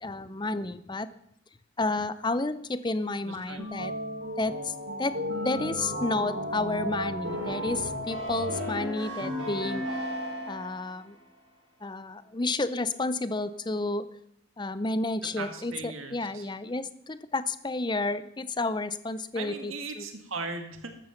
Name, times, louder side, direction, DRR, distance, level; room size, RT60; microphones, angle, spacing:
voice 1, 0.0-1.1 1.8-3.9 4.4-4.7 5.0-5.2 5.4-9.8 10.5-11.1 11.8-14.1 14.6-20.0, left 2 dB, 20° left, 14 dB, 0.6 m, -31 dB
voice 2, 3.2-3.6 15.4-16.5 19.4-21.1, right 3 dB, 85° right, 5 dB, 1.9 m, -38 dB
sound 1, 3.6-10.9, equal, 60° right, 6.6 m, -33 dB
14.5 x 13.0 x 5.8 m, 0.76 s
head